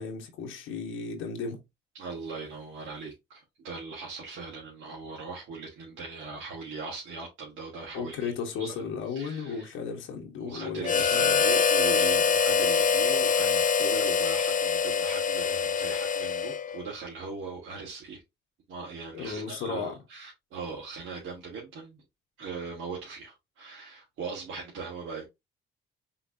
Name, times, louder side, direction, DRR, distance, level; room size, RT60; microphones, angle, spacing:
voice 1, 0.0-1.6 7.9-11.4 19.1-19.9, left 5 dB, 90° left, 1.4 m, -35 dB
voice 2, 1.9-9.7 10.4-18.2 18.7-22.0 22.4-25.3, right 4 dB, 80° right, 1.9 m, -40 dB
Harmonica, 10.8-16.9, left 6 dB, 40° left, 0.5 m, -24 dB
5.7 x 3.3 x 2.8 m
cardioid pair, 90°, 20 cm